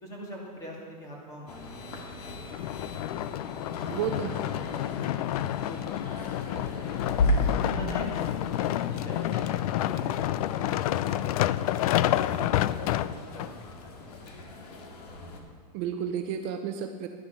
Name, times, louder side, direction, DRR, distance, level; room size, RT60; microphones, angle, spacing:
voice 1, 0.0-3.5 4.0-6.3 6.7-7.1 7.4-11.5 11.9-12.5 13.0-13.6, equal, 15° left, -2 dB, 2.6 m, -45 dB
sound 1, 1.5-15.4, left 2 dB, 85° left, 2.1 m, -35 dB
sound 2, 2.5-13.5 14.1-14.2, left 13 dB, 65° left, 0.5 m, -29 dB
voice 2, 3.9-4.4 15.7-17.1, right 8 dB, 40° right, 6 dB, 0.7 m, -31 dB
12.0 x 10.5 x 5.9 m, 2.1 s
supercardioid pair, 170°, 20 cm